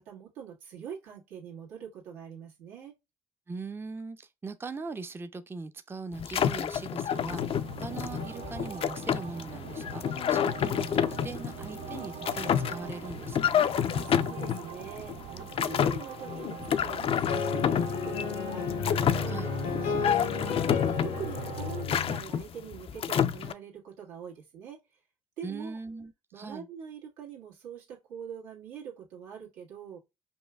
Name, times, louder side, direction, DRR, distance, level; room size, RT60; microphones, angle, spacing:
voice 1, 0.0-2.9 14.1-25.0 25.4-25.8 26.3-30.0, right 7 dB, 90° right, 1.6 m, -44 dB
voice 2, 3.5-7.4 7.8-13.7 19.3-19.5 25.4-26.7, right 4 dB, 20° right, 0.5 m, -40 dB
sound 1, 6.1-23.5, left 9 dB, 50° left, 0.4 m, -29 dB
sound 2, 7.1-21.8, right 11 dB, 70° right, 0.5 m, -43 dB
sound 3, 17.3-22.2, left 6 dB, 80° left, 0.9 m, -32 dB
5.3 x 2.3 x 2.2 m
supercardioid pair, 70°, 12 cm